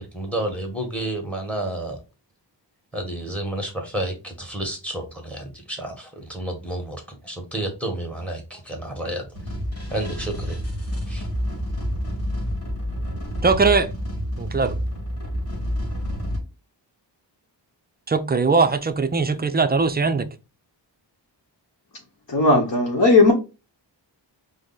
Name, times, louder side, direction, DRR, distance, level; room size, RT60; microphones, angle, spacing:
voice 1, 0.0-2.0 2.9-9.6 9.9-10.6 11.1-11.3, right 1 dB, 5° left, 1.4 m, -30 dB
sound 1, 9.3-16.4, equal, 35° left, 1.7 m, -28 dB
voice 2, 13.4-13.9 14.4-14.8 18.1-20.3, right 4 dB, 25° right, 0.4 m, -20 dB
voice 3, 22.3-23.3, left 2 dB, 50° left, 1.0 m, -16 dB
5.0 x 2.1 x 3.9 m
wide cardioid pair, 80°, 44 cm